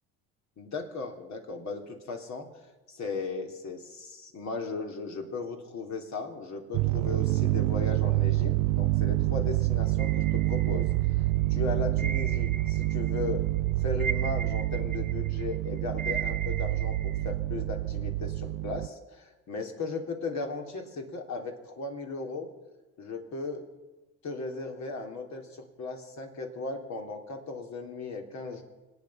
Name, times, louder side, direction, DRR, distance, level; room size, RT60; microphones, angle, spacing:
voice 1, 0.6-2.5 2.9-10.9 11.5-13.4 13.8-22.5 23.0-23.6 24.2-28.6, left 3 dB, 55° left, 3 dB, 3.4 m, -37 dB
sound 1, 6.7-18.9, right 17 dB, 70° right, 0.6 m, -27 dB
sound 2, 10.0-11.3 12.0-13.3 13.6-17.3, right 6 dB, 25° right, 1.0 m, -38 dB
26.0 x 9.4 x 5.7 m, 1.2 s
supercardioid pair, 75°, 35 cm